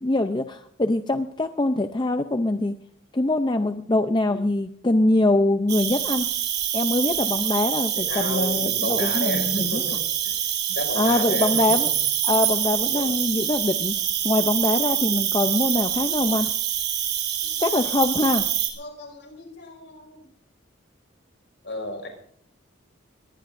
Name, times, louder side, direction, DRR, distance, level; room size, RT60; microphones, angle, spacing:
voice 1, 0.0-2.8 3.1-6.3 6.7-9.8 11.0-11.9 12.2-14.0 14.2-16.5 17.6-18.5, left 2 dB, 20° left, 8 dB, 0.5 m, -23 dB
Cricket, 5.7-18.7, right 11 dB, 55° right, 3.2 m, -25 dB
voice 2, 8.0-12.0 12.8-13.2 17.7-17.9 18.8-20.3 21.6-22.1, left 2 dB, 65° left, 4 dB, 5.3 m, -33 dB
21.5 x 18.5 x 2.6 m, 0.66 s
head